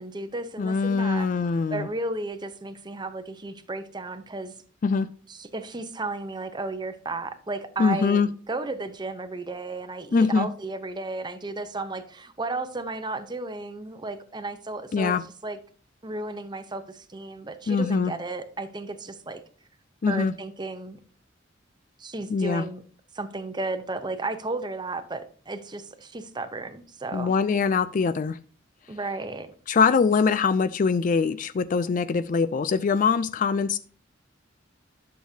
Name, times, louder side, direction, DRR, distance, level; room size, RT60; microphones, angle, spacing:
voice 1, 0.0-1.3 1.7-4.5 5.3-15.2 15.4-15.6 16.0-19.4 20.1-21.0 22.0-22.8 23.1-27.3 28.9-29.5, right 2 dB, 25° right, 10 dB, 0.8 m, -34 dB
voice 2, 0.6-1.9 4.8-5.1 7.8-8.3 10.1-10.5 14.9-15.2 17.7-18.1 20.0-20.3 22.3-22.6 27.1-28.4 29.7-33.8, left 5 dB, 45° left, 13 dB, 0.3 m, -23 dB
11.5 x 6.4 x 2.8 m, 0.43 s
head